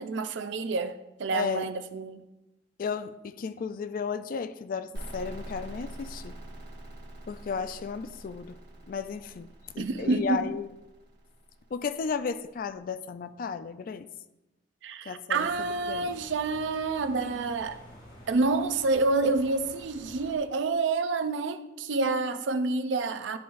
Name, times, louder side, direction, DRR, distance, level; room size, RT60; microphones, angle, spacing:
voice 1, 0.0-2.2 9.8-10.5 14.8-17.8 18.3-23.4, right 3 dB, 85° right, 0.5 m, -28 dB
voice 2, 1.3-1.7 2.8-6.4 7.3-8.6 8.9-10.7 11.7-14.1 15.0-16.2, left 5 dB, 50° left, 0.3 m, -34 dB
sound 1, 4.9-12.5, right 1 dB, 65° right, 1.0 m, -45 dB
sound 2, 15.3-20.4, left 1 dB, 80° left, 2.1 m, -50 dB
11.0 x 3.8 x 2.5 m
head